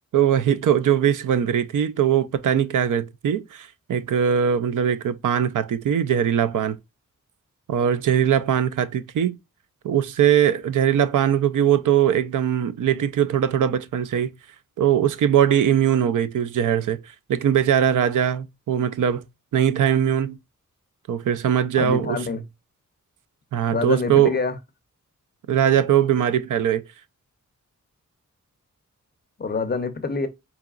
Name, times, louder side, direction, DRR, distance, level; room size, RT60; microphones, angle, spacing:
voice 1, 0.1-6.8 7.7-9.4 9.8-14.3 14.8-17.0 17.3-19.2 19.5-20.4 21.1-22.2 23.5-24.3 25.5-26.8, right 9 dB, 80° right, 0.5 m, -21 dB
voice 2, 21.8-22.4 23.7-24.6 29.4-30.3, left 4 dB, 35° left, 0.5 m, -26 dB
4.7 x 2.9 x 2.3 m
wide cardioid pair, 175°, 31 cm